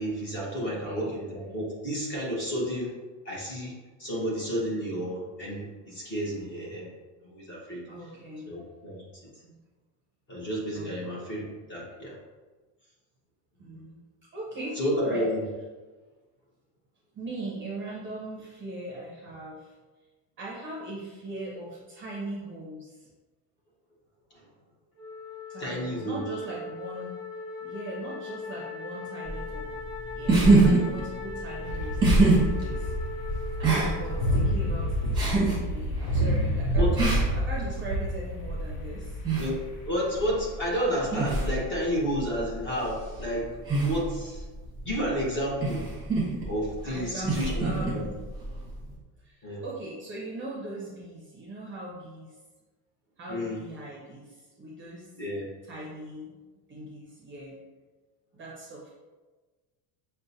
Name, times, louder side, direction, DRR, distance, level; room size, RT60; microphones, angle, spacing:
voice 1, 0.0-2.9 3.2-3.7 4.0-6.9 7.2-7.8 8.5-9.0 10.3-12.1 14.8-15.4 25.6-26.2 36.7-36.9 39.4-39.6 39.8-43.5 43.8-44.4 44.8-45.8 46.5-47.6 47.9-48.0 49.4-49.6 53.3-53.6 55.2-55.5, equal, 25° left, -5 dB, 1.0 m, -31 dB
voice 2, 0.6-1.1 7.9-8.5 9.4-9.6 10.7-11.2 13.6-14.0 14.3-15.3 17.1-19.7 20.4-23.0 25.5-27.2 27.6-29.7 30.1-32.9 33.6-39.2 46.8-48.2 49.2-52.3 53.2-55.1 55.6-56.4 56.7-57.6 58.3-58.9, right 1 dB, 25° right, -5 dB, 0.6 m, -40 dB
Wind instrument woodwind instrument, 25.0-35.3, left 4 dB, 40° left, 1.2 m, -40 dB
sound 1, 29.3-48.9, right 3 dB, 10° right, 1.0 m, -27 dB
sound 2, 31.6-39.8, equal, 70° left, 0.9 m, -29 dB
6.3 x 2.2 x 2.7 m, 1.3 s
cardioid pair, 170°, 47 cm